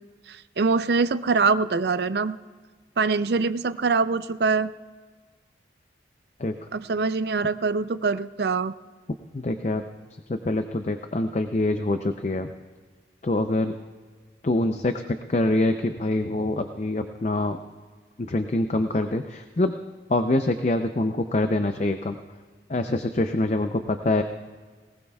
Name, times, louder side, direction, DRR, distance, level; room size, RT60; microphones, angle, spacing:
voice 1, 0.3-2.4 3.0-4.7 6.7-8.7, right 4 dB, 65° right, 13 dB, 0.5 m, -24 dB
voice 2, 9.3-9.8 10.3-12.5 13.2-13.7 14.4-17.6 18.2-19.8 20.1-22.2 22.7-24.2, left 2 dB, 40° left, 7 dB, 0.5 m, -25 dB
20.0 x 19.0 x 2.4 m, 1.5 s
head